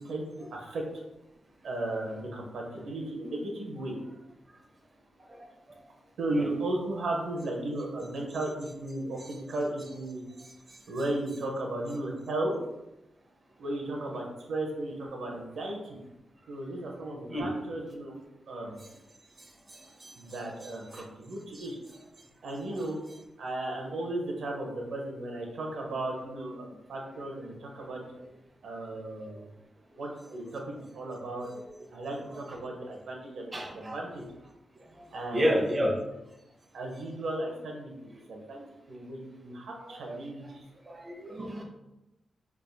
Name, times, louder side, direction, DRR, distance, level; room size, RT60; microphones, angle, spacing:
voice 1, 0.5-0.8 1.6-3.9 6.2-10.2 10.9-12.5 13.6-15.8 16.5-18.2 18.5-18.8 20.2-21.7 22.4-23.0 23.4-28.0 28.6-29.4 30.0-31.5 31.9-34.2 35.1-35.5 36.7-37.9 38.3-38.6 38.9-40.4, right 2 dB, 80° right, 0 dB, 0.7 m, -35 dB
voice 2, 33.5-34.0 35.3-36.0 39.9-40.2 40.9-41.6, equal, 25° right, 0 dB, 0.7 m, -30 dB
3.5 x 3.4 x 2.2 m, 0.94 s
cardioid pair, 70°, 0 cm